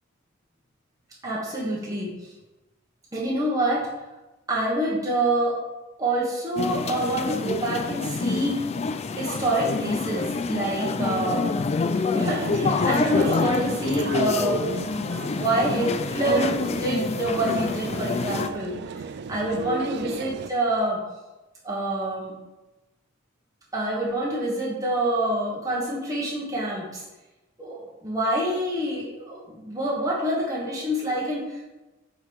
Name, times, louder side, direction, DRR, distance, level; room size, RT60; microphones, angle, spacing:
voice 1, 1.2-2.3 3.1-3.9 4.5-5.6 6.0-8.6 9.1-11.6 12.1-14.7 15.3-19.0 19.3-21.0 21.6-22.3 23.7-27.0 27.6-31.6, right 1 dB, 15° right, -6 dB, 1.2 m, -27 dB
sound 1, 6.6-18.5, left 4 dB, 30° left, 0.3 m, -27 dB
sound 2, 11.9-20.5, right 6 dB, 55° right, 0.3 m, -36 dB
8.0 x 3.8 x 4.7 m, 1.1 s
head